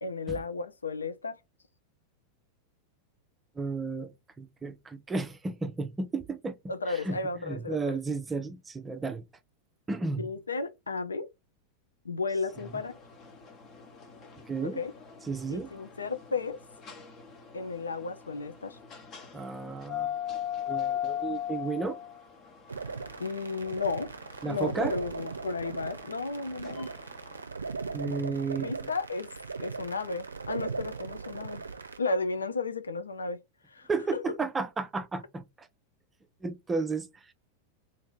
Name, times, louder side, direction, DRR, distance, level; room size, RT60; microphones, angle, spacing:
voice 1, 0.0-1.4 6.7-8.0 10.2-11.3 12.0-13.0 14.6-14.9 15.5-16.6 17.5-18.8 23.2-24.1 24.4-26.9 28.6-29.3 29.6-31.6 32.0-33.4 33.7-34.2, left 4 dB, 75° left, 0.4 m, -33 dB
voice 2, 3.6-6.6 6.9-7.2 7.4-9.2 9.9-10.2 14.5-14.8 15.3-15.7 19.3-20.1 20.7-22.0 24.4-24.9 27.9-28.7 33.9-35.7 36.4-37.3, right 4 dB, 15° right, 0.5 m, -33 dB
sound 1, 12.5-27.4, left 10 dB, 35° left, 0.8 m, -40 dB
sound 2, 22.7-32.0, right 4 dB, 75° right, 0.5 m, -38 dB
2.7 x 2.5 x 3.4 m
figure-of-eight pair, 90°, 0 cm